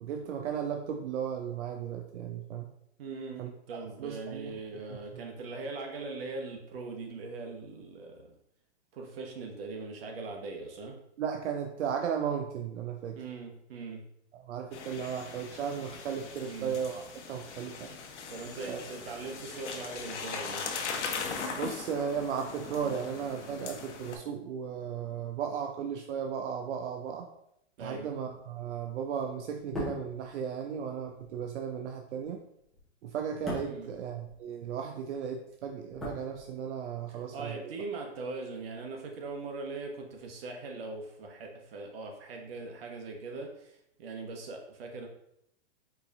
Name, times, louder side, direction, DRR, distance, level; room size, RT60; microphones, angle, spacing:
voice 1, 0.0-2.7 3.4-3.5 4.0-4.6 5.1-5.2 11.2-13.2 14.3-18.0 18.7-18.8 21.5-27.3 27.8-32.4 33.0-37.6, right 7 dB, 85° right, 4 dB, 0.5 m, -35 dB
voice 2, 3.0-8.3 8.9-11.0 13.2-14.1 16.4-16.8 18.3-20.7 27.8-28.1 33.6-34.0 37.1-45.1, right 3 dB, 55° right, 2 dB, 1.0 m, -41 dB
sound 1, 14.7-24.2, left 5 dB, 85° left, 0.8 m, -40 dB
sound 2, 29.6-34.9 35.1-37.0 37.2-37.4, left 1 dB, ahead, 0.8 m, -42 dB
4.6 x 3.3 x 2.6 m, 0.77 s
hypercardioid pair, 150°, 34 cm